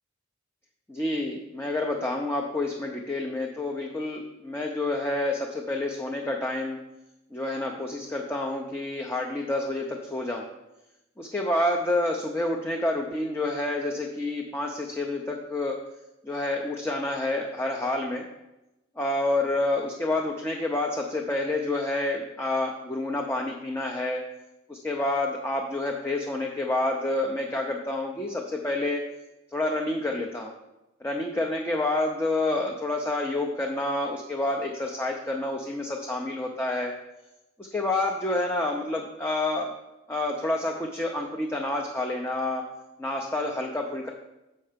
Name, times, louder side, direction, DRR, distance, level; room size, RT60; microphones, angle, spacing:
voice 1, 0.9-6.8 7.3-10.4 11.2-15.8 16.2-18.2 19.0-24.2 24.7-29.0 29.5-30.5 31.0-36.9 37.6-39.7 40.1-42.6 43.0-44.1, left 2 dB, 10° left, 1 dB, 0.5 m, -28 dB
6.8 x 5.4 x 5.0 m, 0.95 s
head